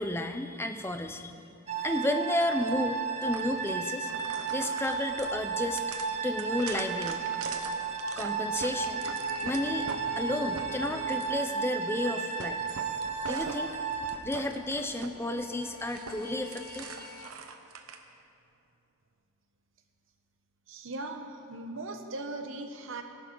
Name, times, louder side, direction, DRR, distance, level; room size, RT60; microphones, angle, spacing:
voice 1, 0.0-1.3 1.8-4.1 4.5-5.8 6.2-7.5 8.2-9.1 9.4-9.9 10.2-12.6 13.3-13.7 14.2-17.1, left 1 dB, 10° left, 7 dB, 0.6 m, -32 dB
sound 1, 1.7-14.2, right 5 dB, 30° right, 0.8 m, -34 dB
sound 2, 2.4-2.7 3.3-3.7 4.1-10.0 10.4-11.4 11.9-12.1 12.4-15.1 15.4-18.0, right 5 dB, 90° right, 1.0 m, -42 dB
sound 3, 8.7-11.9 14.7-17.3, left 2 dB, 70° left, 0.7 m, -45 dB
voice 2, 20.7-23.0, right 2 dB, 65° right, 5 dB, 1.1 m, -39 dB
18.5 x 11.5 x 3.9 m, 2.6 s
head